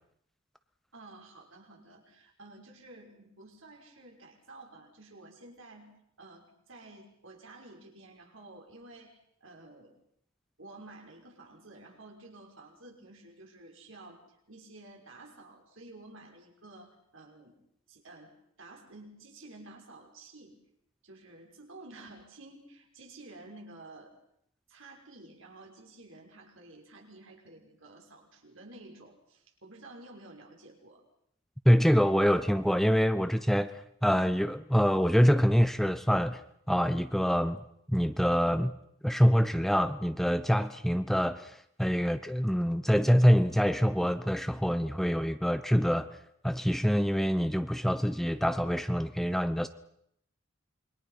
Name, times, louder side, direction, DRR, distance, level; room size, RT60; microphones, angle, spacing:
voice 1, 0.9-9.9 10.6-17.6 17.9-20.6 21.0-24.1 24.7-31.0, right 2 dB, 75° right, 1 dB, 6.4 m, -51 dB
voice 2, 31.6-36.4 36.7-37.6 37.9-38.7 39.0-46.1 46.4-49.7, equal, ahead, 10 dB, 0.9 m, -25 dB
27.5 x 24.0 x 6.0 m, 0.72 s
head